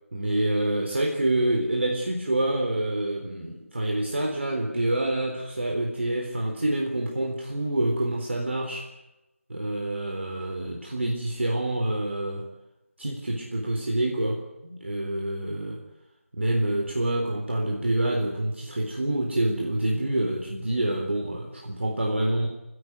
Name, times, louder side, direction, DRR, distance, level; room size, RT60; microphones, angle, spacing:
voice 1, 0.1-8.9 9.5-12.5 13.0-15.8 16.3-22.5, right 1 dB, 55° right, 1 dB, 3.9 m, -27 dB
28.0 x 16.0 x 9.4 m, 0.98 s
figure-of-eight pair, 165°, 7 cm